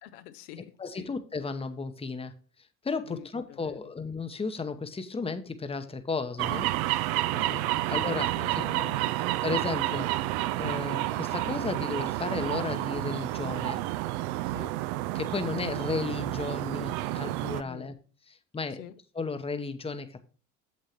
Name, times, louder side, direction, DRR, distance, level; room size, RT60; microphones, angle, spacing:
voice 1, 0.0-1.1 3.0-3.8 7.3-7.9 8.3-9.2 9.7-10.0 14.5-14.7 17.6-17.9 18.8-18.9, left 11 dB, 75° left, 10 dB, 0.8 m, -47 dB
voice 2, 0.8-2.3 2.8-6.7 7.5-7.6 7.9-8.8 9.4-10.1 10.6-13.8 15.1-17.9 18.3-18.8 19.1-20.2, left 4 dB, 15° left, 9 dB, 0.9 m, -34 dB
sound 1, 6.4-17.6, right 16 dB, 65° right, 0.6 m, -30 dB
8.4 x 7.4 x 2.9 m, 0.39 s
hypercardioid pair, 65°, 45 cm